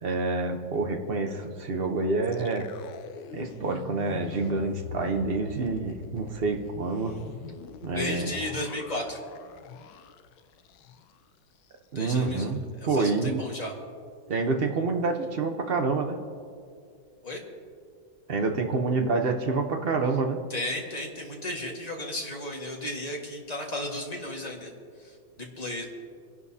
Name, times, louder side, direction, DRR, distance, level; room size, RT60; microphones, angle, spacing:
voice 1, 0.0-2.7 3.3-7.2 7.8-8.3 11.9-12.6 12.9-13.4 14.3-16.2 18.3-20.4, right 3 dB, 55° right, 4 dB, 0.6 m, -27 dB
sound 1, 2.2-11.3 11.6-11.7 12.1-12.5, left 8 dB, 75° left, 1.4 m, -45 dB
voice 2, 7.9-9.2 11.9-12.4 12.8-13.7 17.2-17.4 20.5-24.7 25.0-25.9, left 1 dB, 20° left, 0 dB, 1.5 m, -34 dB
27.0 x 11.0 x 2.8 m, 2.2 s
omnidirectional pair, 2.2 m